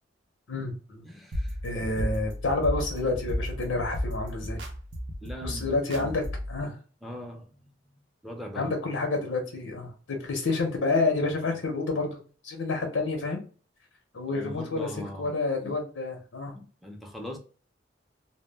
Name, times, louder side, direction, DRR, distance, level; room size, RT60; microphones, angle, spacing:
voice 1, 0.5-1.0 1.6-4.6 5.4-6.2 6.5-6.8 8.6-12.2 12.4-13.4 14.1-16.5, left 3 dB, 90° left, 0.7 m, -29 dB
voice 2, 1.0-1.6 1.9-2.2 5.2-6.2 7.0-7.9 8.2-9.0 14.3-15.8 16.5-17.4, equal, ahead, 0.4 m, -41 dB
sound 1, 1.3-6.6, equal, 70° right, 0.6 m, -33 dB
2.1 x 2.1 x 3.2 m
head